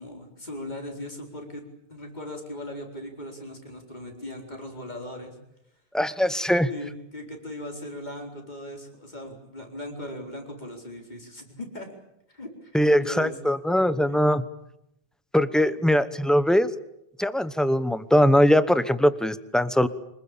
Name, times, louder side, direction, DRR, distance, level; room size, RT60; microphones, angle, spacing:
voice 1, 0.0-1.6 1.9-5.4 6.7-11.9 12.3-13.3 14.1-14.2 15.6-15.7, left 1 dB, 45° left, 2 dB, 4.7 m, -38 dB
voice 2, 5.9-6.7 12.7-14.4 15.3-16.7 17.2-19.9, equal, ahead, 14 dB, 0.9 m, -21 dB
25.5 x 21.0 x 8.7 m, 0.81 s
omnidirectional pair, 1.0 m